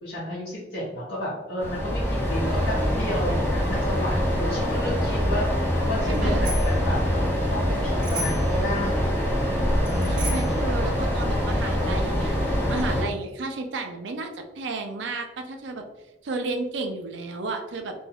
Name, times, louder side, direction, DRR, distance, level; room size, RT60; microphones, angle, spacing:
voice 1, 0.0-5.5 5.9-9.1 9.9-10.6, left 1 dB, 70° left, -9 dB, 0.9 m, -32 dB
sound 1, 1.6-13.0, equal, 15° left, 0.7 m, -24 dB
Bicycle bell, 6.1-6.8 8.0-8.6 9.8-10.6, equal, 25° right, 0.9 m, -35 dB
voice 2, 6.1-6.5 10.1-15.8 16.2-17.9, right 3 dB, 80° right, 4 dB, 0.4 m, -32 dB
2.6 x 2.2 x 3.3 m, 1.0 s
head